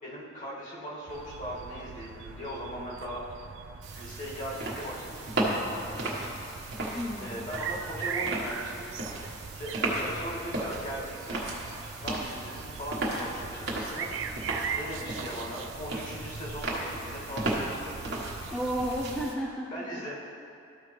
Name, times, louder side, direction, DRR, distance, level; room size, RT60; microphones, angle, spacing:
voice 1, 0.0-3.2 3.9-6.0 7.2-8.9 9.6-11.5 12.0-14.1 14.7-17.9 19.7-20.1, equal, 40° left, -6 dB, 2.1 m, -39 dB
sound 1, 1.1-19.3, right 6 dB, 80° right, 0.4 m, -41 dB
sound 2, 3.8-19.3, right 1 dB, 60° right, 1.4 m, -35 dB
voice 2, 6.9-7.4 18.5-20.0, equal, 5° left, -4 dB, 0.5 m, -33 dB
13.5 x 5.1 x 3.2 m, 2.6 s
head